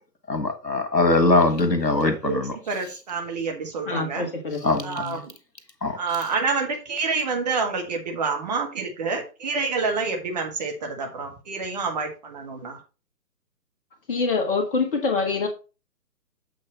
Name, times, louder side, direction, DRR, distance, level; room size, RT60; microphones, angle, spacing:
voice 1, 0.3-2.5 4.6-4.8 5.8-6.0, left 2 dB, 85° left, 1.6 m, -21 dB
voice 2, 2.0-4.3 4.8-5.3 6.0-12.8, right 4 dB, 25° right, 1.4 m, -28 dB
voice 3, 3.9-5.2 14.1-15.5, left 4 dB, 35° left, 1.7 m, -26 dB
7.9 x 3.7 x 5.3 m
figure-of-eight pair, 140°, 49 cm